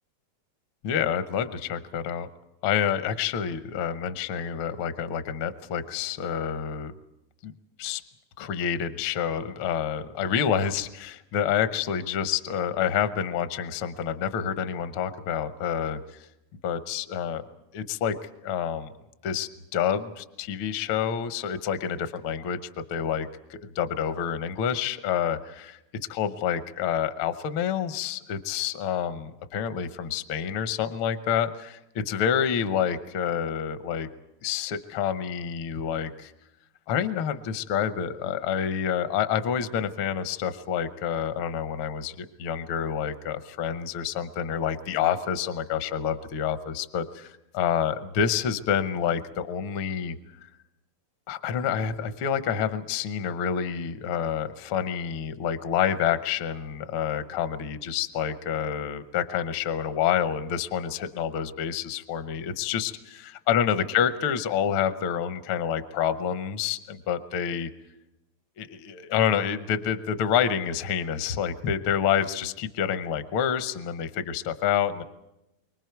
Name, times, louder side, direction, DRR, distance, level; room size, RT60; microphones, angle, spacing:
voice 1, 0.8-2.3 2.6-6.9 7.4-7.5 7.8-8.0 8.4-16.3 16.6-17.4 17.7-18.2 18.4-18.9 19.2-22.6 22.9-25.8 26.1-34.1 34.4-36.3 36.9-50.2 51.3-67.7 68.6-75.0, left 8 dB, 65° left, 10 dB, 1.3 m, -28 dB
29.0 x 24.5 x 4.6 m, 0.91 s
omnidirectional pair, 3.4 m